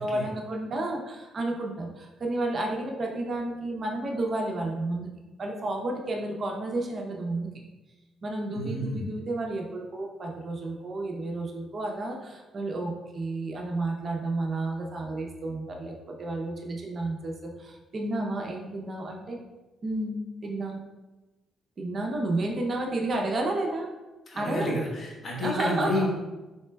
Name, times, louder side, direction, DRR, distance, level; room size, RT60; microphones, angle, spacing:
voice 1, 0.0-5.1 5.4-7.6 8.2-19.4 19.8-20.8 21.8-23.9 24.4-24.8 25.4-26.1, right 2 dB, 45° right, 1 dB, 0.6 m, -31 dB
voice 2, 8.5-9.1 24.3-26.1, left 1 dB, 45° left, -3 dB, 1.1 m, -30 dB
4.2 x 3.3 x 2.2 m, 1.1 s
cardioid pair, 90°, 0 cm